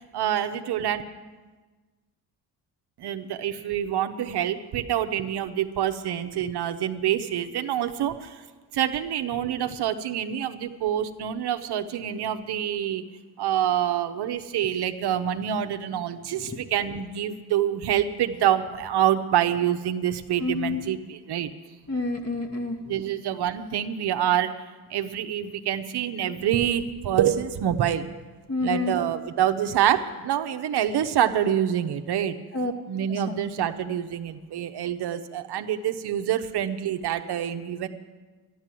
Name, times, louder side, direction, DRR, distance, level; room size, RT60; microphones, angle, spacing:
voice 1, 0.1-1.0 3.0-8.4 8.7-13.0 13.4-21.5 22.9-24.5 24.9-28.1 28.6-32.4 32.9-37.9, right 10 dB, 65° right, 8 dB, 1.0 m, -26 dB
voice 2, 20.4-20.8 21.9-22.9 28.5-29.0 32.5-32.7 33.1-33.4, left 3 dB, 35° left, 3 dB, 2.1 m, -29 dB
12.5 x 11.5 x 7.6 m, 1.3 s
supercardioid pair, 65°, 42 cm